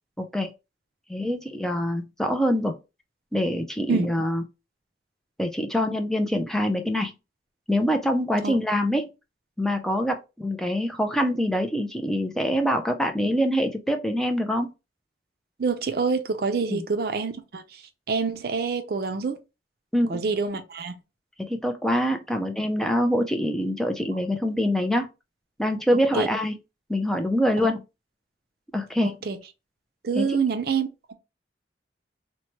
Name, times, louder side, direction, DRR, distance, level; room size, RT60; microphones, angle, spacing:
voice 1, 0.2-0.5 1.1-2.7 3.3-4.4 5.4-7.1 7.7-9.1 9.6-14.7 16.7-16.8 19.9-20.4 21.5-25.1 25.6-26.6 26.9-27.8 28.7-29.1 30.1-30.4, equal, 5° left, 0.4 m, -25 dB
voice 2, 15.6-17.6 18.1-19.4 20.1-20.9 26.1-26.3 29.0-29.4 30.0-31.1, right 5 dB, 55° right, 0.5 m, -26 dB
2.9 x 2.1 x 2.9 m
head